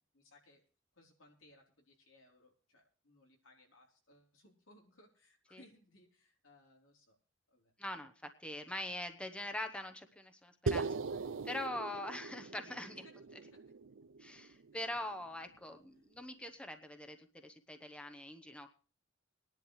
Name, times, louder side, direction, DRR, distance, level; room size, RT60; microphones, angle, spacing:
voice 1, 0.1-0.6 0.9-7.2 7.5-7.7 12.8-13.0 13.5-13.7, left 1 dB, 85° left, 1 dB, 3.7 m, -64 dB
voice 2, 7.8-13.0 14.2-18.8, left 1 dB, 5° left, 6 dB, 0.9 m, -43 dB
sound 1, 10.7-15.0, right 4 dB, 75° right, 0.5 m, -40 dB
19.5 x 10.5 x 3.2 m, 0.38 s
head